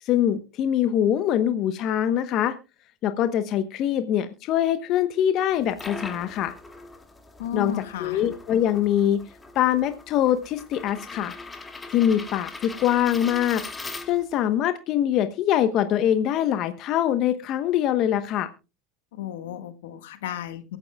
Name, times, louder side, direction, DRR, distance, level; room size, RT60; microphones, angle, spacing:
voice 1, 0.0-2.5 3.0-6.5 7.5-7.7 8.0-9.2 9.5-11.4 11.9-13.6 14.1-18.5, left 10 dB, 50° left, 9 dB, 1.0 m, -23 dB
sound 1, 5.5-14.5, left 3 dB, 15° left, 2.2 m, -41 dB
voice 2, 7.4-8.2 19.2-20.8, left 9 dB, 75° left, 9 dB, 1.6 m, -33 dB
23.0 x 8.8 x 2.3 m, 0.30 s
hypercardioid pair, 90°, 0 cm